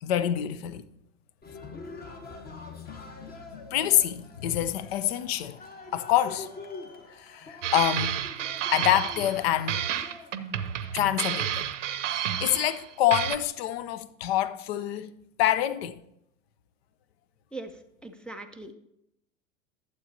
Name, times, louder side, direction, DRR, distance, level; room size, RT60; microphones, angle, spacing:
voice 1, 0.0-0.8 3.7-5.6 5.9-6.5 7.2-8.3 8.7-9.9 10.9-11.6 12.1-15.1 15.4-16.0, left 12 dB, 50° left, 0.7 m, -26 dB
Cheering, 1.4-13.4, left 3 dB, 20° left, 1.2 m, -46 dB
sound 1, 7.6-9.4 9.7-12.8 13.1-13.4, right 10 dB, 65° right, 0.8 m, -30 dB
voice 2, 17.5-18.7, right 2 dB, ahead, 0.4 m, -41 dB
12.0 x 7.7 x 2.8 m
figure-of-eight pair, 85°, 40 cm